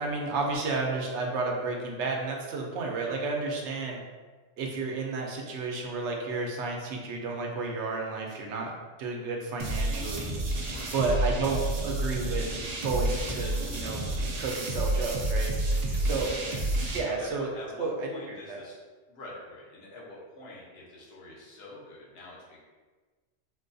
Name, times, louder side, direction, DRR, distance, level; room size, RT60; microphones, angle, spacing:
voice 1, 0.0-4.0 4.6-8.7 9.0-10.3 10.9-12.5 12.8-14.0 14.4-15.5 16.0-16.3 16.9-17.5 17.8-17.9 18.3-18.6, right 3 dB, 75° right, 0 dB, 0.9 m, -31 dB
sound 1, 9.6-17.0, right 1 dB, 55° right, 0.4 m, -30 dB
voice 2, 15.9-18.8 19.1-22.6, left 1 dB, 60° left, -5 dB, 1.1 m, -45 dB
4.1 x 2.2 x 2.6 m, 1.4 s
omnidirectional pair, 1.2 m